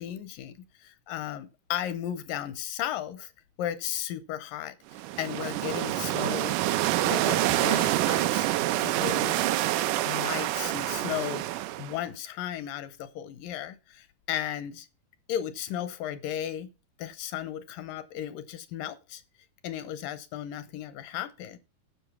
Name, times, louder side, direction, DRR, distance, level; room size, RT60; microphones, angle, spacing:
voice 1, 0.0-3.3 3.6-6.6 7.0-8.5 8.8-9.5 10.1-11.4 11.8-14.9 15.3-16.7 17.0-19.2 19.6-21.6, left 11 dB, 80° left, 12 dB, 2.2 m, -35 dB
sound 1, 4.9-12.0, right 15 dB, 85° right, 1.8 m, -27 dB
10.0 x 6.3 x 6.0 m, 0.31 s
omnidirectional pair, 4.3 m